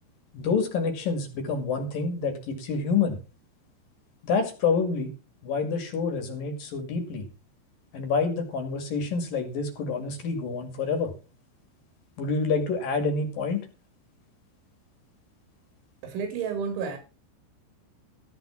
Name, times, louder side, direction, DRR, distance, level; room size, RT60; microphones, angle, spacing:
voice 1, 0.3-3.2 4.2-5.1 5.4-7.3 7.9-11.1 12.2-13.6, left 4 dB, 55° left, 3.5 m, -27 dB
voice 2, 16.0-17.0, right 6 dB, 75° right, 4.7 m, -31 dB
14.5 x 5.9 x 7.1 m
omnidirectional pair, 5.5 m